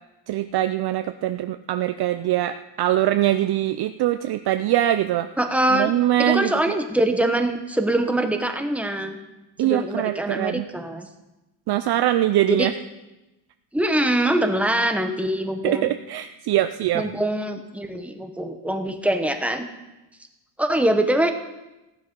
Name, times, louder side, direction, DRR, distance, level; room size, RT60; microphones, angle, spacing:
voice 1, 0.3-5.3 5.7-6.5 9.6-10.7 11.7-12.7 15.6-17.1, right 13 dB, 60° right, 9 dB, 0.5 m, -22 dB
voice 2, 5.4-5.9 6.2-9.2 9.6-11.1 12.5-12.7 13.7-15.9 16.9-19.7 20.6-21.3, right 1 dB, 5° right, 6 dB, 0.9 m, -23 dB
15.5 x 11.5 x 5.2 m, 1.0 s
cardioid pair, 175°, 45 cm